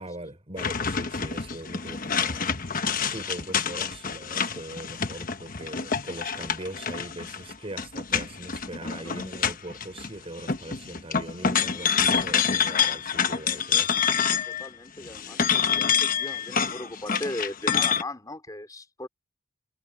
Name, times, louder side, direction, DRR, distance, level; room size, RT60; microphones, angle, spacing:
voice 1, 0.0-14.0, right 1 dB, 30° right, 4.8 m, -41 dB
sound 1, 0.6-10.1 10.4-14.7 15.0-18.0, left 7 dB, 40° left, 1.1 m, -27 dB
voice 2, 11.6-11.9 14.5-19.1, left 1 dB, 15° left, 4.1 m, -38 dB
head